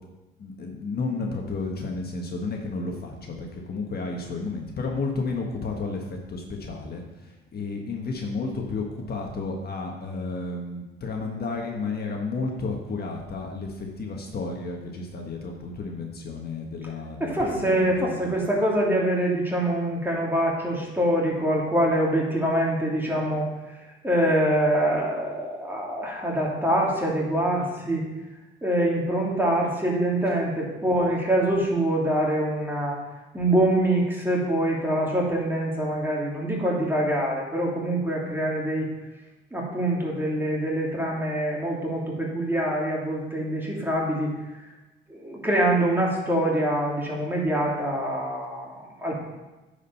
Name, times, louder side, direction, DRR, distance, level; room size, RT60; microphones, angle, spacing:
voice 1, 0.4-18.2 30.2-30.4, left 3 dB, 50° left, 1 dB, 1.4 m, -32 dB
voice 2, 17.2-23.5 24.0-28.1 28.6-33.0 33.3-38.9 39.5-44.4 45.1-49.2, right 1 dB, 10° right, -4 dB, 3.0 m, -24 dB
9.6 x 5.1 x 5.7 m, 1.1 s
cardioid pair, 90°, 20 cm